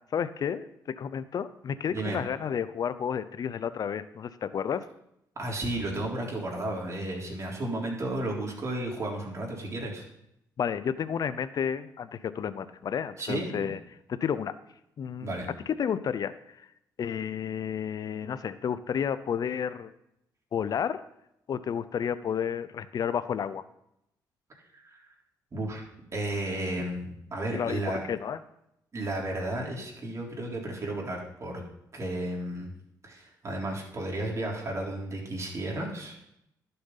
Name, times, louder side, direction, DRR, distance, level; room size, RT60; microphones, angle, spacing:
voice 1, 0.1-4.9 10.6-13.8 14.1-14.5 15.0-15.4 15.8-16.7 17.0-19.9 20.5-21.0 21.5-23.6 27.5-27.8 28.1-28.4, left 8 dB, 55° left, 14 dB, 0.7 m, -31 dB
voice 2, 5.4-10.1 13.2-13.7 15.2-15.5 24.8-25.0 25.5-25.8 26.1-28.0 28.9-31.6 31.9-32.7 33.0-36.2, right 1 dB, 40° right, -2 dB, 3.7 m, -33 dB
11.5 x 6.9 x 5.6 m, 0.80 s
supercardioid pair, 70°, 8 cm